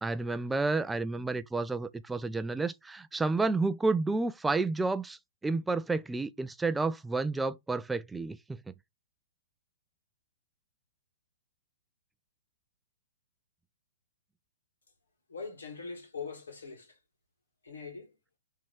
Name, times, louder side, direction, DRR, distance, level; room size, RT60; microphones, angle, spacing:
voice 1, 0.0-8.6, right 3 dB, 5° right, 0.4 m, -30 dB
voice 2, 15.3-17.0 17.6-18.1, left 5 dB, 75° left, 2.7 m, -42 dB
6.0 x 3.7 x 5.8 m
figure-of-eight pair, 115°, 0 cm